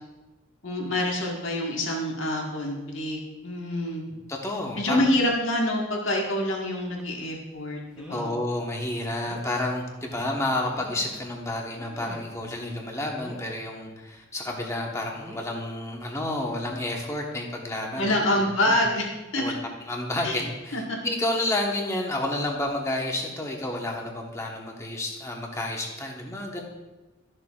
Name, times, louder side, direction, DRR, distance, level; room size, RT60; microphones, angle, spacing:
voice 1, 0.6-4.0 4.7-8.3 18.0-19.1 19.3-19.6 20.2-20.4 20.7-21.0, left 1 dB, 75° left, -1 dB, 1.6 m, -26 dB
voice 2, 4.3-5.1 8.1-18.2 18.7-18.8 19.4-19.5 19.9-26.6, left 1 dB, 15° left, 0 dB, 1.2 m, -30 dB
sound 1, 7.0-7.2 7.9-8.4 8.8-8.9 9.3-9.5 10.4-11.3 11.8-12.5 13.1-13.6 15.1-15.6 16.7-16.9 17.3-17.4, equal, 5° right, 0.9 m, -45 dB
12.5 x 6.5 x 2.4 m, 1.1 s
head